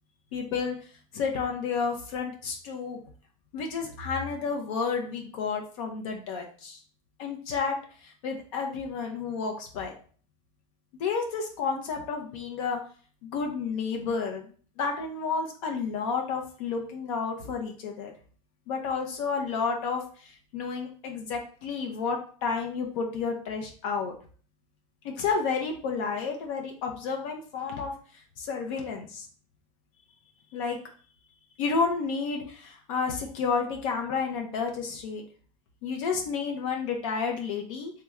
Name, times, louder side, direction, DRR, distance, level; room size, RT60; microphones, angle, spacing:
voice 1, 0.3-0.7 1.1-3.0 3.5-6.8 7.2-9.9 11.0-12.8 13.2-14.4 14.8-18.1 18.7-24.1 25.0-27.9 28.4-29.3 30.5-30.8 31.6-35.2 35.8-37.9, left 5 dB, 70° left, 2 dB, 0.7 m, -31 dB
3.1 x 2.2 x 3.5 m, 0.42 s
hypercardioid pair, 105°, 18 cm